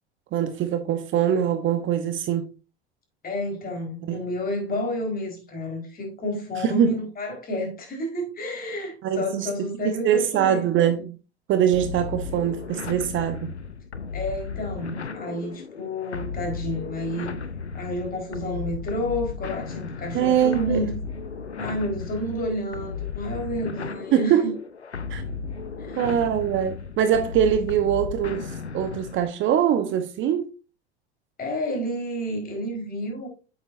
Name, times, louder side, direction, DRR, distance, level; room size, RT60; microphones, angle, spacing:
voice 1, 0.3-2.5 4.1-4.2 6.6-6.9 9.0-9.5 9.8-11.2 11.5-13.5 20.1-20.8 24.1-24.6 25.1-25.2 26.0-30.5, right 9 dB, 35° right, 1.0 m, -23 dB
voice 2, 3.2-10.7 14.1-17.3 17.7-20.9 21.6-24.5 25.8-26.0 31.4-33.3, left 1 dB, 25° left, 4.5 m, -30 dB
sound 1, 11.7-29.3, left 5 dB, 90° left, 0.7 m, -35 dB
9.1 x 7.9 x 2.6 m
figure-of-eight pair, 80°, 32 cm